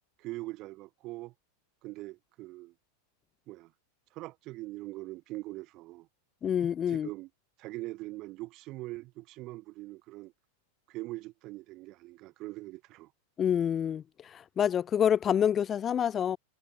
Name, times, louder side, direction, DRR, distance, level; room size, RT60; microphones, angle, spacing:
voice 1, 0.2-1.3 1.8-2.7 3.5-3.7 4.1-6.1 6.9-7.3 7.6-10.3 10.9-13.1, right 19 dB, 40° right, 1.3 m, -42 dB
voice 2, 6.4-7.1 13.4-14.0 14.3-16.4, left 9 dB, 25° left, 1.0 m, -27 dB
figure-of-eight pair, 90°, 0 cm